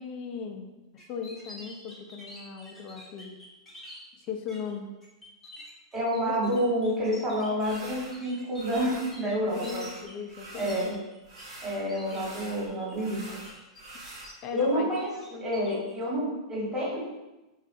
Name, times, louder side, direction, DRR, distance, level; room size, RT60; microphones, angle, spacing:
voice 1, 0.0-3.3 4.2-4.9 6.2-6.5 9.5-11.1 14.4-15.5, left 6 dB, 40° left, 5 dB, 0.4 m, -38 dB
sound 1, 1.0-4.0 4.5-4.7 5.0-11.4 11.7-12.2 12.6-13.0 13.4-14.6 14.9-15.9, equal, 5° left, 0.8 m, -48 dB
voice 2, 5.9-9.9 10.5-10.9 11.6-13.2 14.5-15.1 15.4-17.0, equal, 20° right, -6 dB, 1.4 m, -28 dB
sound 2, 7.6-8.2 8.5-9.2 9.4-10.9 11.2-14.3, right 1 dB, 55° right, 1.0 m, -45 dB
3.4 x 2.4 x 2.6 m, 1.0 s
hypercardioid pair, 125°, 3 cm